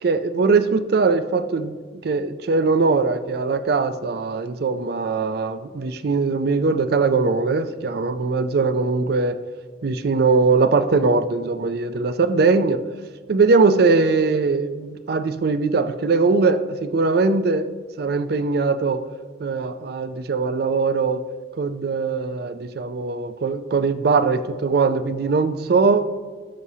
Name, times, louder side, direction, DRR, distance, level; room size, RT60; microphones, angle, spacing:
voice 1, 0.0-1.7 2.0-9.4 9.8-12.8 13.3-17.7 18.0-19.0 19.4-21.2 21.6-26.1, right 4 dB, 60° right, 11 dB, 0.4 m, -21 dB
12.5 x 5.6 x 2.8 m, 1.5 s
head